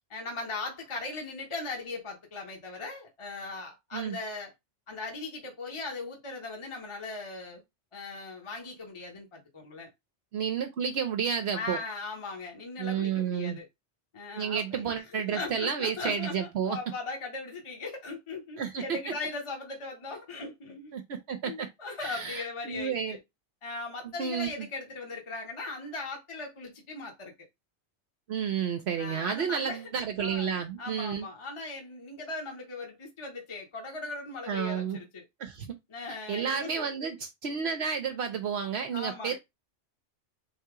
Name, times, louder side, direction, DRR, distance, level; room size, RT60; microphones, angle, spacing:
voice 1, 0.1-4.5 4.9-7.6 7.9-9.9 11.5-13.7 14.1-14.8 15.1-20.9 21.4-23.2 23.6-27.3 29.0-29.8 30.2-35.2 35.9-36.9 38.9-39.4, left 3 dB, 30° left, 0.9 m, -39 dB
voice 2, 10.3-11.8 12.8-13.6 14.3-16.8 18.6-19.1 20.9-21.7 22.0-23.2 24.0-24.7 28.3-31.3 34.5-35.0 35.4-35.7 36.3-39.4, right 7 dB, 65° right, 0.9 m, -31 dB
3.6 x 2.8 x 4.7 m
omnidirectional pair, 1.2 m